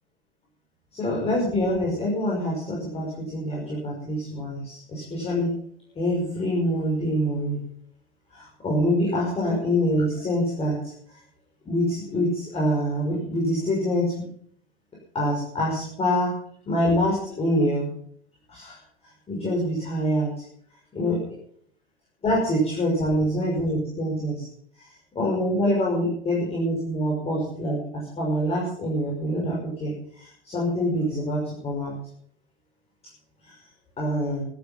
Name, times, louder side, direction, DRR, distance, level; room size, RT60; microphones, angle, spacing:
voice 1, 0.9-5.5 5.9-7.6 8.3-11.2 11.6-14.2 15.1-16.3 16.7-17.9 18.5-18.8 19.3-20.3 20.9-21.2 22.2-24.5 24.8-24.9 25.1-32.0 33.4-33.5 34.0-34.4, equal, 20° left, -4 dB, 5.9 m, -25 dB
16.0 x 12.0 x 5.9 m, 0.63 s
figure-of-eight pair, 90°, 30 cm